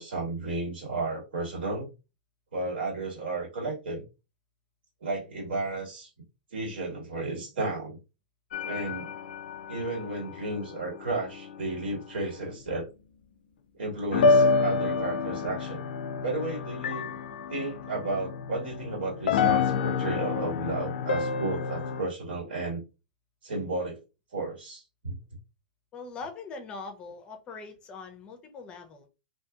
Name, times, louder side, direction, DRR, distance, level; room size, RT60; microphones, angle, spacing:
voice 1, 0.0-1.9 2.5-4.0 5.0-6.1 6.5-8.0 8.6-9.1 9.7-12.9 13.7-15.8 16.2-17.2 17.5-22.8 23.4-24.0 24.3-25.2, right 2 dB, 90° right, 1.6 m, -33 dB
sound 1, 8.5-11.9 12.4-12.6 14.1-22.0, left 4 dB, 75° left, 0.3 m, -28 dB
voice 2, 25.9-29.1, left 4 dB, 20° left, 0.5 m, -42 dB
2.7 x 2.6 x 2.3 m
hypercardioid pair, 160°, 5 cm